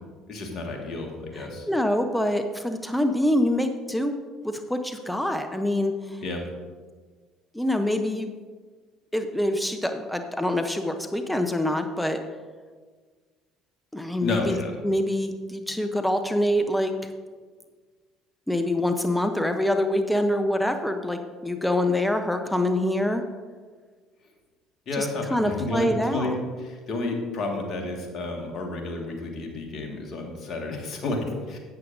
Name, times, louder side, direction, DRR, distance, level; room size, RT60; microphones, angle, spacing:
voice 1, 0.3-1.7 6.2-6.4 14.2-14.9 24.9-31.6, left 2 dB, 50° left, 2 dB, 1.9 m, -31 dB
voice 2, 1.4-4.2 4.4-6.2 7.5-8.3 9.1-12.2 13.9-14.6 14.8-16.9 18.5-23.2 24.9-26.4, left 1 dB, 5° left, 7 dB, 0.8 m, -25 dB
12.5 x 8.4 x 2.7 m, 1.5 s
hypercardioid pair, 60°, 0 cm